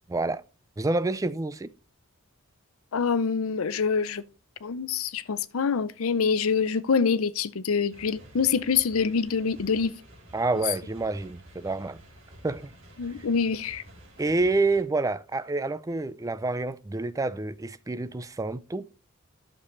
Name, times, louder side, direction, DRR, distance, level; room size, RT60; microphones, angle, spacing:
voice 1, 0.1-0.4 0.8-1.7 10.3-12.0 12.4-12.7 14.2-18.9, right 3 dB, 15° right, 0.4 m, -28 dB
voice 2, 2.9-4.2 4.6-9.9 13.0-13.8, left 5 dB, 85° left, 0.6 m, -25 dB
sound 1, 7.9-14.8, equal, 70° right, 3.2 m, -50 dB
11.0 x 6.8 x 3.1 m
head